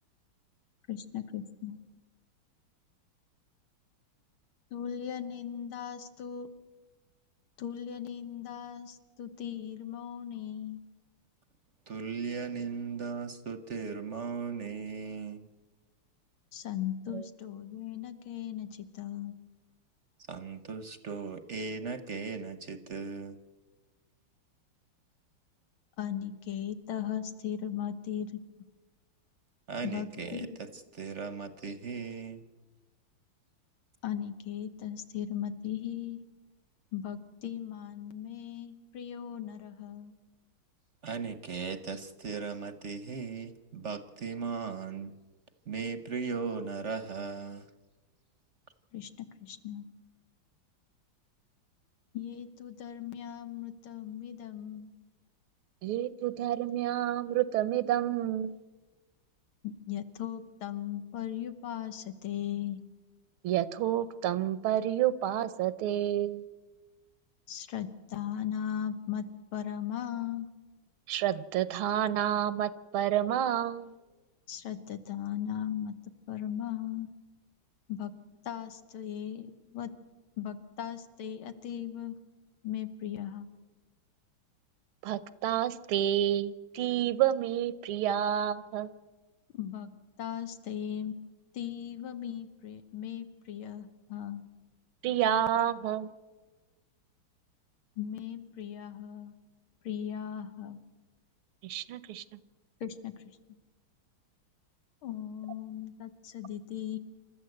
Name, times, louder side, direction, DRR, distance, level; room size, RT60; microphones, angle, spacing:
voice 1, 0.9-1.8 4.7-6.5 7.6-10.8 16.5-19.3 26.0-28.4 29.8-30.6 34.0-36.2 36.9-40.1 48.9-49.1 49.4-49.9 52.1-54.9 59.6-62.8 67.5-69.3 69.5-70.5 74.5-75.9 76.3-77.1 77.9-78.1 78.5-79.9 80.4-82.2 82.6-83.5 89.5-89.9 90.2-91.2 91.5-94.4 98.0-99.3 99.8-100.8 102.8-103.4 105.0-107.0, left 10 dB, 90° left, 9 dB, 2.1 m, -37 dB
voice 2, 11.9-15.5 17.1-17.3 20.3-23.4 29.7-30.7 30.9-32.5 41.0-45.1 45.7-47.7, right 5 dB, 50° right, 11 dB, 0.9 m, -37 dB
voice 3, 55.8-58.6 63.4-66.4 71.1-73.9 85.0-88.9 95.0-96.1 101.6-102.4, right 11 dB, 85° right, 16 dB, 1.7 m, -29 dB
28.0 x 13.5 x 7.9 m, 1.2 s
omnidirectional pair, 2.3 m